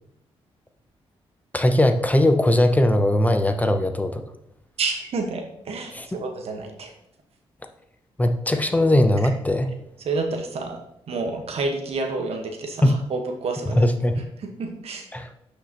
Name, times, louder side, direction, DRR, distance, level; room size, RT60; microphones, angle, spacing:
voice 1, 1.5-4.2 5.9-6.1 8.2-9.7 12.8-13.0 13.7-14.2 15.1-15.3, left 1 dB, 15° left, 7 dB, 0.8 m, -19 dB
voice 2, 4.8-6.9 10.0-10.8 11.1-13.9 14.4-15.1, right 3 dB, 70° right, 4 dB, 1.4 m, -29 dB
11.5 x 5.2 x 3.0 m, 0.80 s
cardioid pair, 60°, 11 cm